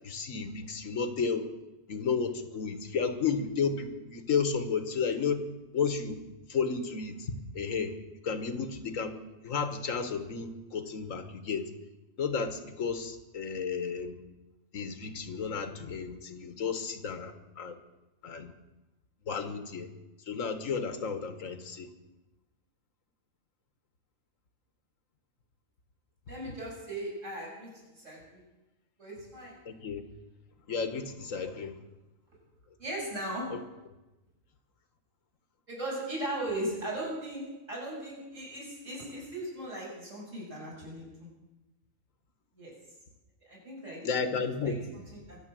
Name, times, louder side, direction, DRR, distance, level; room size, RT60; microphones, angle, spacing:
voice 1, 0.0-1.5 1.9-5.5 5.7-6.2 6.5-8.0 8.2-9.2 9.4-11.7 12.2-14.2 14.7-17.8 18.2-18.5 19.3-19.9 20.3-21.9 29.6-30.0 30.7-31.7 33.5-33.6 44.0-44.8, left 5 dB, 90° left, 9 dB, 1.7 m, -32 dB
voice 2, 26.3-28.4 29.0-29.8 32.8-33.5 35.7-41.3 42.6-42.7 43.5-44.8 45.1-45.4, right 1 dB, 75° right, -5 dB, 7.4 m, -38 dB
23.0 x 7.8 x 7.6 m, 1.0 s
omnidirectional pair, 1.3 m